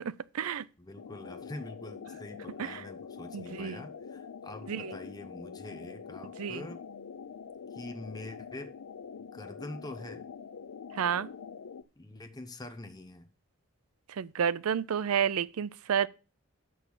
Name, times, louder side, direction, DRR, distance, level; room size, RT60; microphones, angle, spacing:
voice 1, 0.0-0.7 2.6-2.8 3.3-3.8 4.7-4.9 6.4-6.6 10.9-11.3 14.1-16.1, right 8 dB, 85° right, 0.4 m, -30 dB
voice 2, 0.8-6.8 7.7-8.7 9.3-10.3 12.0-13.3, left 2 dB, 15° left, 0.9 m, -44 dB
sound 1, 1.0-11.8, left 6 dB, 85° left, 0.5 m, -45 dB
6.7 x 6.3 x 7.2 m
head